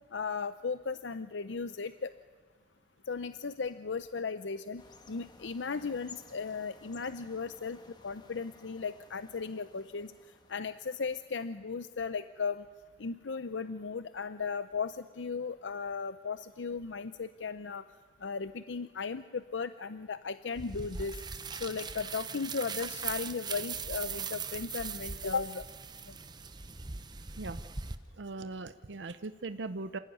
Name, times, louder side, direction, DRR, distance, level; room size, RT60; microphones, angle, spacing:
voice 1, 0.1-2.1 3.1-7.8 8.0-10.1 10.5-12.6 13.0-17.8 18.2-21.2 21.5-25.6 26.1-26.2, left 5 dB, 90° left, 12 dB, 0.6 m, -36 dB
sound 1, 4.8-11.4, left 3 dB, 25° left, 1.5 m, -56 dB
sound 2, 20.6-28.0, right 5 dB, 25° right, 0.9 m, -40 dB
voice 2, 28.2-30.0, right 3 dB, 85° right, 11 dB, 0.7 m, -39 dB
27.5 x 16.5 x 9.4 m, 1.5 s
head